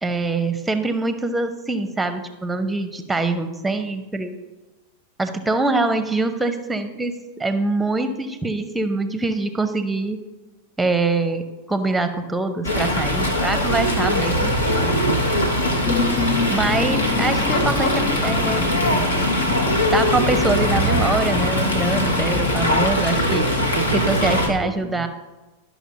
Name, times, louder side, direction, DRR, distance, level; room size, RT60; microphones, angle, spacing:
voice 1, 0.0-4.4 5.2-10.2 10.8-11.4 11.7-14.5 16.5-18.7 19.9-23.4 23.9-25.1, right 3 dB, 10° right, 0.7 m, -24 dB
Fowl, 12.6-24.5, equal, 75° left, 1.1 m, -21 dB
voice 2, 14.8-15.3 22.8-25.1, right 11 dB, 55° right, 0.3 m, -30 dB
sound 1, 15.8-22.9, left 6 dB, 25° left, 0.5 m, -28 dB
12.0 x 6.1 x 2.7 m
figure-of-eight pair, 90°, 0 cm